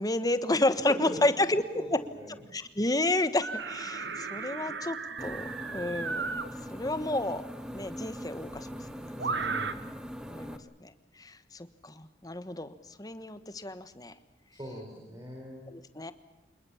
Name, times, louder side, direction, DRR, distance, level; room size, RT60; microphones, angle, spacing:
voice 1, 0.0-1.6 1.9-2.0 2.5-5.0 5.2-6.3 6.7-7.4 7.7-8.7 10.3-10.9 11.2-12.7 13.0-14.1 15.7-16.1, left 2 dB, 20° left, 12 dB, 1.3 m, -30 dB
voice 2, 0.9-1.2 1.7-2.3 9.2-9.7 14.6-15.6, equal, 20° right, 0 dB, 5.0 m, -41 dB
sound 1, 3.4-6.5 7.8-7.9 9.2-9.7, right 4 dB, 80° right, 1.6 m, -35 dB
sound 2, 5.2-10.6, equal, 5° right, 1.3 m, -41 dB
27.0 x 21.0 x 7.2 m, 1.0 s
head